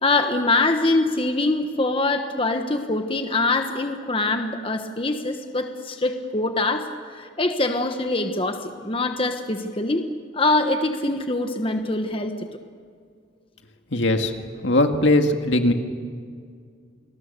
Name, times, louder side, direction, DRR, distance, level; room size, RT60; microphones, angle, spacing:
voice 1, 0.0-10.1 10.3-12.3, left 2 dB, 30° left, 6 dB, 1.2 m, -24 dB
voice 2, 13.9-14.3 14.6-15.7, left 1 dB, 75° left, 5 dB, 1.9 m, -19 dB
28.5 x 21.0 x 6.8 m, 2.1 s
head